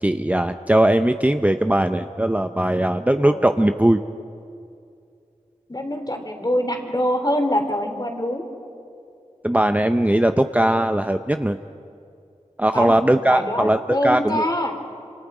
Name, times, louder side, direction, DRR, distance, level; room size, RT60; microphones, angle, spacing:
voice 1, 0.0-4.0 9.4-11.6 12.6-14.5, right 1 dB, 10° right, 8 dB, 0.7 m, -19 dB
voice 2, 5.7-8.4 12.7-13.0 13.3-14.7, left 1 dB, 30° left, 5 dB, 3.3 m, -24 dB
27.5 x 26.0 x 4.9 m, 2.5 s
wide cardioid pair, 40°, 13 cm